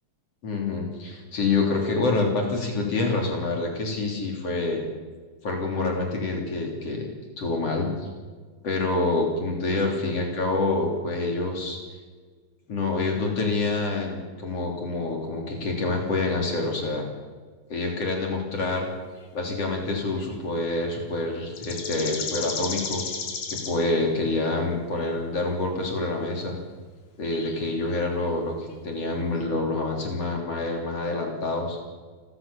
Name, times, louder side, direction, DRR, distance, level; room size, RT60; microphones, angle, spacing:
voice 1, 0.4-4.8 5.4-7.1 7.4-8.1 8.6-11.8 12.7-17.1 17.7-18.9 19.3-23.0 23.5-26.6 27.2-31.8, left 3 dB, 55° left, 1 dB, 4.2 m, -27 dB
sound 1, 20.2-20.4 20.9-21.0 21.6-23.8 24.9-25.2 27.2-28.3 28.7-28.8 29.4-29.5, left 5 dB, 80° left, 4.1 m, -34 dB
29.0 x 14.5 x 7.0 m, 1.5 s
omnidirectional pair, 3.4 m